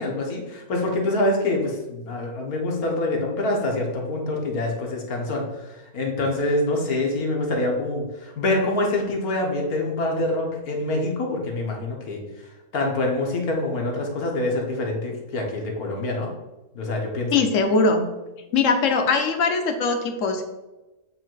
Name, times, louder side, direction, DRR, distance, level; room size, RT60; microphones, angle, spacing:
voice 1, 0.0-12.2 12.7-16.3 16.8-17.4, left 2 dB, 85° left, 0 dB, 1.7 m, -25 dB
voice 2, 17.3-18.0 18.5-20.4, left 4 dB, 65° left, 5 dB, 1.1 m, -21 dB
7.5 x 2.8 x 4.6 m, 1.0 s
omnidirectional pair, 1.5 m